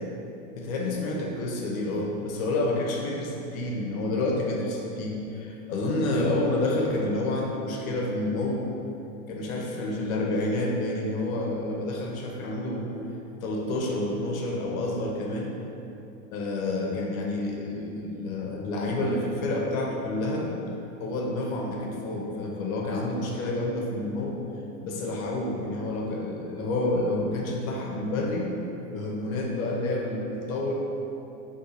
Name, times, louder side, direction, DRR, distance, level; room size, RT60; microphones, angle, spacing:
voice 1, 0.5-8.6 9.3-12.9 13.4-15.6 16.3-20.5 21.0-24.4 24.8-28.5 28.9-30.7, left 2 dB, 70° left, -1 dB, 0.7 m, -29 dB
2.6 x 2.3 x 4.0 m, 2.9 s
hypercardioid pair, 120°, 43 cm